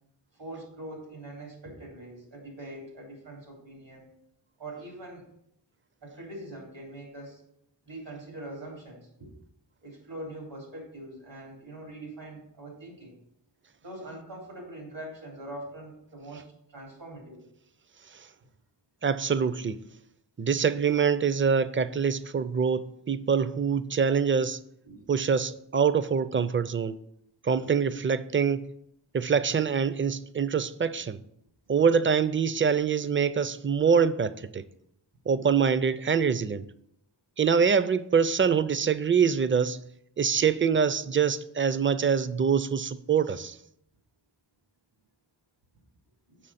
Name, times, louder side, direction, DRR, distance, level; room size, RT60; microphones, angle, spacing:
voice 1, 0.4-4.1 4.6-5.2 6.0-7.4 7.8-9.3 9.8-13.2 13.8-16.4 16.7-17.4 24.8-25.0 46.3-46.4, right 1 dB, 85° right, 3.0 m, -43 dB
voice 2, 19.0-19.8 20.4-24.6 25.1-27.0 27.4-28.7 29.1-31.2 31.7-34.6 35.3-36.6 37.4-39.8 40.2-43.6, right 6 dB, 30° right, 0.4 m, -25 dB
7.6 x 6.2 x 4.1 m
wide cardioid pair, 45°, 44 cm